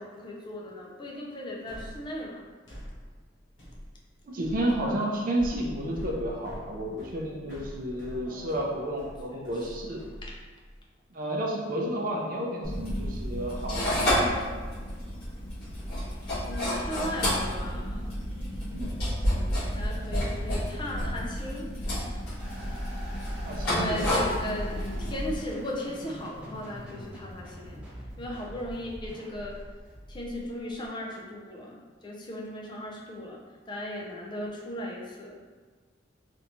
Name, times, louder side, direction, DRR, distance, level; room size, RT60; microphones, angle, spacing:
voice 1, 0.0-2.4 8.2-8.9 9.3-9.5 10.2-10.3 16.4-18.2 19.7-21.7 22.1-22.2 23.7-27.8 28.2-29.6 30.1-33.4 33.7-35.4, left 1 dB, 25° left, -3 dB, 0.4 m, -37 dB
sound 1, 1.7-10.8, equal, 85° left, 0.9 m, -44 dB
voice 2, 4.3-10.1 11.1-14.4 18.6-19.0 23.4-24.1, right 1 dB, 45° right, -1 dB, 0.5 m, -31 dB
sound 2, 12.6-25.4, equal, 55° left, 1.4 m, -30 dB
jaboobala slow, 22.4-30.9, equal, 5° right, 0.8 m, -44 dB
3.3 x 2.6 x 2.9 m, 1.4 s
head